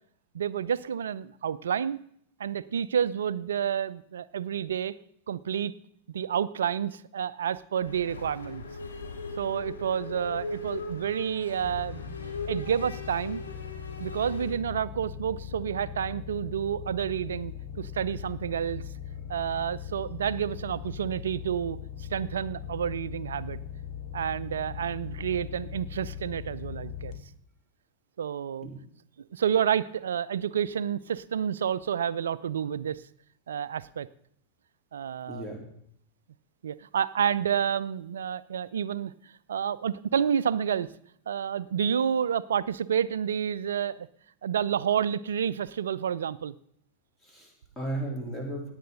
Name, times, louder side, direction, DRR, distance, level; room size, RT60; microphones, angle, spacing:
voice 1, 0.3-2.0 2.4-5.0 5.3-5.7 6.1-8.6 9.4-13.4 14.0-18.8 19.3-23.6 24.1-27.1 28.2-28.7 29.3-33.0 33.5-34.1 34.9-35.5 36.6-40.9 41.3-44.1 44.4-46.5, right 8 dB, 65° right, 19 dB, 0.4 m, -29 dB
sound 1, 7.8-14.5, left 3 dB, 75° left, 1.8 m, -39 dB
sound 2, 11.6-27.2, left 9 dB, 45° left, 1.9 m, -40 dB
voice 2, 35.3-35.6 47.2-48.7, right 1 dB, 10° left, 0 dB, 3.4 m, -35 dB
17.0 x 8.9 x 3.9 m, 0.69 s
figure-of-eight pair, 90°, 0 cm